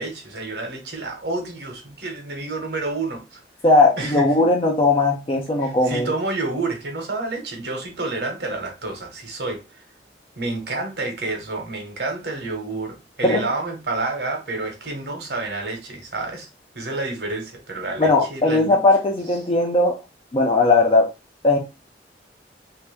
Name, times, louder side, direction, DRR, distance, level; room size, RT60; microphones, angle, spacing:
voice 1, 0.0-3.4 4.0-4.2 5.6-9.6 10.4-16.5 16.7-18.8, right 3 dB, 65° right, 1.3 m, -29 dB
voice 2, 3.6-6.1 13.2-13.4 18.0-20.0 20.3-21.1 21.4-21.6, left 2 dB, 30° left, 0.6 m, -18 dB
3.4 x 2.9 x 3.4 m
head